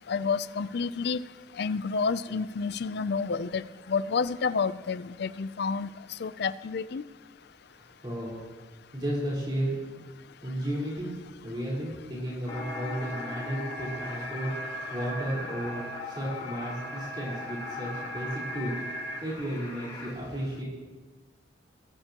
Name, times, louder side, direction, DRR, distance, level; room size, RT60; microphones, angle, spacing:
voice 1, 0.1-1.2 1.6-5.9 6.2-7.0, left 5 dB, 60° left, 16 dB, 0.5 m, -29 dB
voice 2, 7.7-8.4 8.9-9.9 10.4-11.1 11.4-20.6, right 1 dB, 25° right, -7 dB, 4.3 m, -34 dB
sound 1, 12.5-20.1, left 1 dB, 25° left, 4.1 m, -38 dB
22.0 x 13.5 x 3.0 m, 1.3 s
head